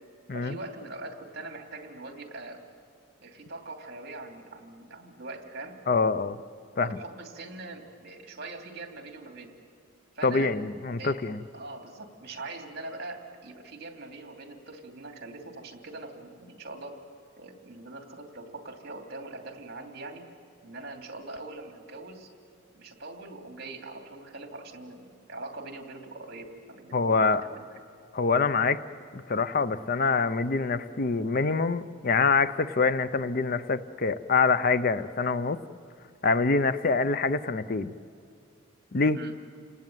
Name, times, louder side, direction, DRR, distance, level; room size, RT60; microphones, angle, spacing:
voice 1, 0.3-2.6 3.2-5.7 6.7-9.5 10.1-10.5 11.0-11.2 11.5-17.0 17.4-20.3 20.6-22.3 22.7-27.8 39.1-39.3, right 2 dB, 50° right, 4 dB, 2.7 m, -42 dB
voice 2, 5.9-6.4 6.8-7.0 10.2-11.4 26.9-27.4 28.1-28.8 29.1-35.6 36.2-37.9 38.9-39.2, left 4 dB, 45° left, 14 dB, 0.6 m, -25 dB
29.5 x 18.5 x 9.2 m, 2.5 s
head